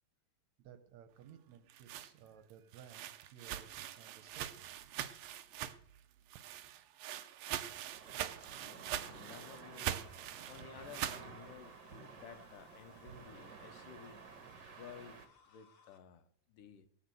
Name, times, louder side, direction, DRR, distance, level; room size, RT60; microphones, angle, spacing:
voice 1, 0.6-4.7, right 9 dB, 70° right, 9 dB, 1.8 m, -57 dB
sound 1, 1.5-6.0 6.3-11.3, right 11 dB, 90° right, 1.4 m, -43 dB
sound 2, 7.9-15.3, right 6 dB, 50° right, 1.3 m, -53 dB
voice 2, 8.6-14.2 14.8-16.9, left 8 dB, 75° left, 10 dB, 2.4 m, -55 dB
sound 3, 9.3-16.0, left 5 dB, 55° left, 2.4 m, -65 dB
18.0 x 8.0 x 7.7 m, 0.66 s
omnidirectional pair, 4.0 m